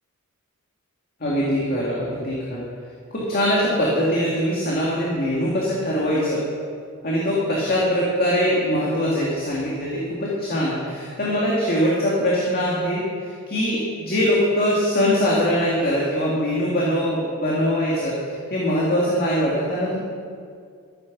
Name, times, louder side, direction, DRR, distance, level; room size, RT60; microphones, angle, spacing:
voice 1, 1.2-2.6 3.1-6.4 7.0-20.0, equal, 45° left, -5 dB, 2.2 m, -22 dB
14.0 x 9.4 x 6.0 m, 2.2 s
head